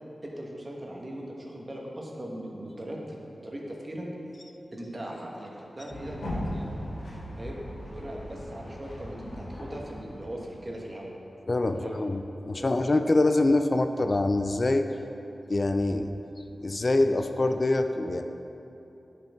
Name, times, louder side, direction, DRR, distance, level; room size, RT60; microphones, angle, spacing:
voice 1, 0.2-4.1 4.7-6.8 7.4-11.1 11.7-12.0 12.6-12.8, right 1 dB, 35° right, -2 dB, 1.4 m, -39 dB
sound 1, 5.9-10.7, equal, 80° left, 1.8 m, -38 dB
voice 2, 11.5-14.9 15.5-16.1 16.6-18.2, left 2 dB, 45° left, 7 dB, 0.4 m, -25 dB
10.0 x 5.2 x 3.6 m, 3.0 s
cardioid pair, 55°, 0 cm